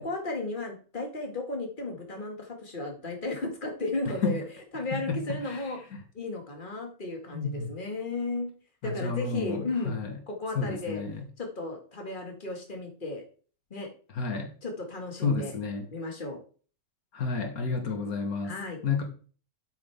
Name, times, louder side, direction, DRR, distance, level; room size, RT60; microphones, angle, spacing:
voice 1, 0.0-4.4 4.7-5.8 6.1-8.5 8.8-10.0 10.3-11.0 11.4-13.2 13.7-13.9 14.6-15.5 15.9-16.4 18.4-18.8, left 2 dB, 35° left, 2 dB, 2.2 m, -34 dB
voice 2, 4.1-4.4 4.9-5.6 5.9-6.0 7.3-7.7 8.8-10.2 10.6-11.3 14.1-14.5 15.2-15.9 17.1-18.6 18.8-19.0, left 4 dB, 75° left, 5 dB, 1.9 m, -31 dB
9.6 x 8.1 x 3.5 m, 0.40 s
omnidirectional pair, 1.5 m